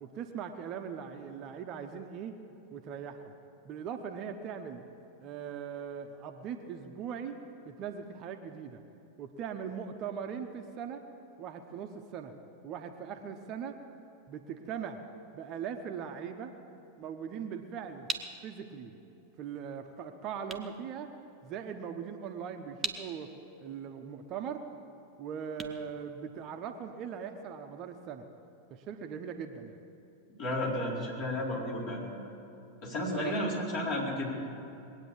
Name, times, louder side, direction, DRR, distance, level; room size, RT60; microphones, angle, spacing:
voice 1, 0.0-2.4 2.7-3.3 3.6-4.8 5.2-8.8 9.2-11.0 11.4-12.3 12.6-13.7 14.3-15.0 15.3-16.5 17.0-18.1 18.4-18.9 19.4-21.1 21.4-23.3 23.6-24.6 25.2-28.2 28.7-29.8 33.1-33.6, right 7 dB, 35° right, 6 dB, 1.0 m, -40 dB
sound 1, 17.5-26.8, right 4 dB, 15° right, 1.1 m, -44 dB
voice 2, 30.4-32.0 32.8-34.3, left 1 dB, 40° left, -4 dB, 4.5 m, -32 dB
21.0 x 9.1 x 7.3 m, 2.8 s
figure-of-eight pair, 90°, 0 cm